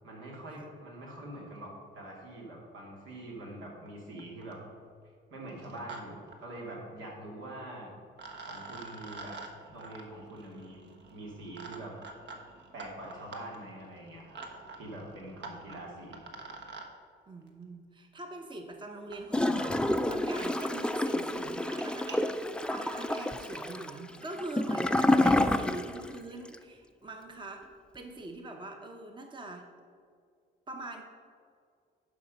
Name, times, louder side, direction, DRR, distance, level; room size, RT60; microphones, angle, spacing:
voice 1, 0.0-4.6 5.3-7.9 8.4-9.3 9.7-11.9 12.7-14.4 14.8-16.2, right 1 dB, 85° right, -2 dB, 2.6 m, -44 dB
sound 1, 3.9-4.0 4.2-4.6 5.5-6.0 6.3-6.4 7.7-7.8 8.2-16.9 18.2-18.3 19.1-19.2 19.9-20.0 20.2-20.3 20.6-20.7 21.0-21.2 21.6-22.2, right 3 dB, 60° right, 1.3 m, -47 dB
voice 2, 17.3-27.7 27.9-29.7 30.7-31.0, right 2 dB, 25° right, 3 dB, 0.9 m, -43 dB
Gurgling / Toilet flush, 19.3-26.2 26.5-26.6, left 1 dB, 5° left, 0.4 m, -28 dB
11.5 x 5.0 x 5.3 m, 2.2 s
cardioid pair, 90°, 20 cm